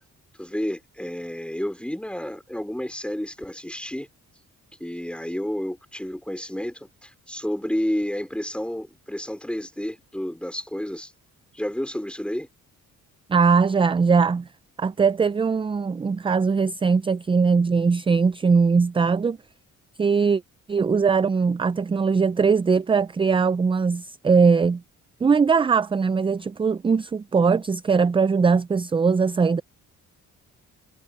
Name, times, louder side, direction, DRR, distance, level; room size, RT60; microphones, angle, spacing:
voice 1, 0.4-4.1 4.8-11.1 11.5-12.5, equal, 5° left, 4.2 m, -30 dB
voice 2, 13.3-14.5 14.8-19.4 20.0-20.4 20.7-24.8 25.2-29.6, right 5 dB, 15° right, 0.3 m, -20 dB
cardioid pair, 85°, 34 cm